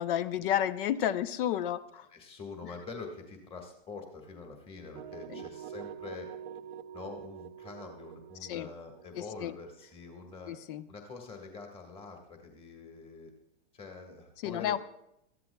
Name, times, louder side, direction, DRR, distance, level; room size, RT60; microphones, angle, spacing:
voice 1, 0.0-2.1 5.3-5.4 8.5-8.7 9.1-9.6 10.5-10.8 14.4-14.8, left 11 dB, 55° left, 15 dB, 0.8 m, -31 dB
voice 2, 2.1-6.3 6.9-10.5 10.9-13.3 13.7-14.8, left 4 dB, 15° left, 3 dB, 1.7 m, -45 dB
sound 1, 4.9-10.8, right 9 dB, 70° right, 0.7 m, -46 dB
20.5 x 13.5 x 2.3 m, 0.79 s
hypercardioid pair, 130°, 32 cm